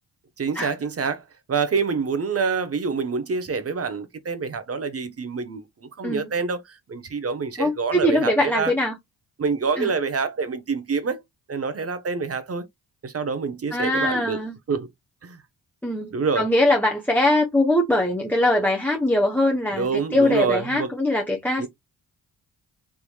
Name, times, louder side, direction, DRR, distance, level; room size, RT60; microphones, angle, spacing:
voice 1, 0.4-8.7 9.4-11.2 11.5-12.6 13.0-14.4 14.7-14.9 15.2-15.4 16.1-16.5 19.7-20.9 21.6-21.7, right 5 dB, 35° right, 0.9 m, -26 dB
voice 2, 7.6-9.0 9.8-9.9 13.7-14.6 15.8-21.7, left 1 dB, 5° left, 0.7 m, -22 dB
3.5 x 2.9 x 2.3 m
supercardioid pair, 50°, 40 cm